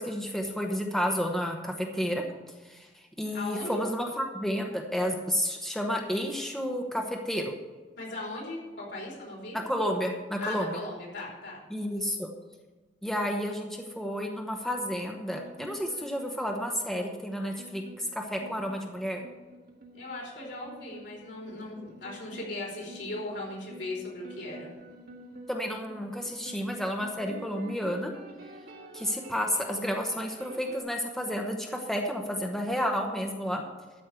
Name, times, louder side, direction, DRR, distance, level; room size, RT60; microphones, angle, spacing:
voice 1, 0.0-2.2 2.6-7.5 9.5-10.8 11.7-12.3 13.0-19.2 25.5-28.1 28.9-33.6, equal, ahead, 1 dB, 1.0 m, -31 dB
voice 2, 3.3-3.8 8.0-9.6 10.4-11.6 19.9-24.7, left 2 dB, 75° left, -4 dB, 4.8 m, -38 dB
sound 1, 15.3-30.8, right 1 dB, 55° right, 1.7 m, -49 dB
13.0 x 5.3 x 8.3 m, 1.3 s
head